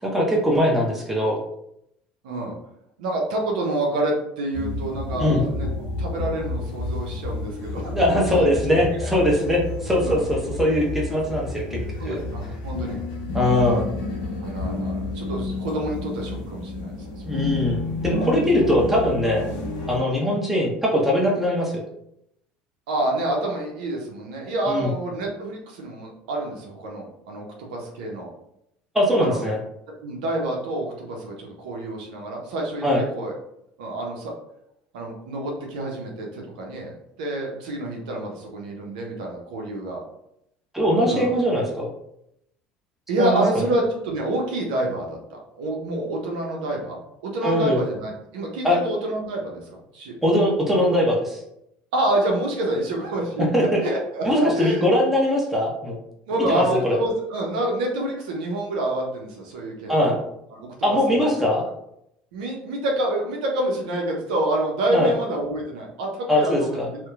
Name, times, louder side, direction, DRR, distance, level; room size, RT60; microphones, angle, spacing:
voice 1, 0.0-1.4 5.2-5.4 7.9-12.2 13.3-13.9 17.3-19.5 19.9-21.8 24.7-24.9 28.9-29.6 32.8-33.0 40.7-41.9 43.2-43.4 47.4-47.8 48.6-48.8 50.2-51.4 53.4-53.8 54.2-56.0 56.5-57.0 59.9-60.2 60.8-61.6 64.9-65.1 66.3-66.9, left 1 dB, 5° right, -3 dB, 0.8 m, -21 dB
voice 2, 3.0-5.7 6.0-8.5 8.9-9.0 10.0-10.2 12.0-13.0 14.4-17.5 18.1-18.3 18.6-18.7 19.5-19.7 20.1-20.3 22.9-28.3 29.2-29.5 29.9-32.8 33.1-33.3 33.8-34.3 34.9-40.0 41.1-41.3 43.1-45.2 45.6-50.1 51.9-54.9 56.3-60.2 60.5-61.3 62.3-67.0, right 1 dB, 80° right, 0 dB, 0.6 m, -28 dB
sound 1, 4.5-20.0, left 3 dB, 75° left, 0.7 m, -30 dB
2.8 x 2.1 x 2.3 m, 0.78 s
hypercardioid pair, 80°, 4 cm